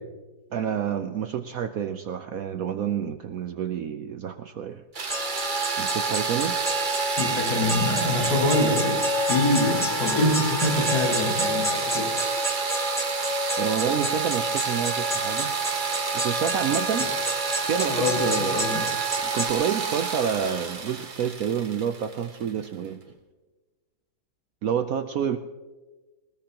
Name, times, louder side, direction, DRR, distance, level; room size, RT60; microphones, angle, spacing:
voice 1, 0.5-4.8 5.8-6.6 13.6-15.5 16.1-17.1 17.7-23.0 24.6-25.4, right 8 dB, 65° right, 8 dB, 0.9 m, -28 dB
sound 1, 4.9-22.7, right 5 dB, 35° right, 0.9 m, -29 dB
sound 2, 5.1-19.5, left 1 dB, ahead, 1.2 m, -30 dB
voice 2, 7.2-12.1 17.9-18.8, left 1 dB, 70° left, -4 dB, 6.5 m, -25 dB
sound 3, 9.2-13.8, left 3 dB, 45° left, 1.4 m, -45 dB
21.0 x 19.5 x 2.9 m, 1.3 s
omnidirectional pair, 2.0 m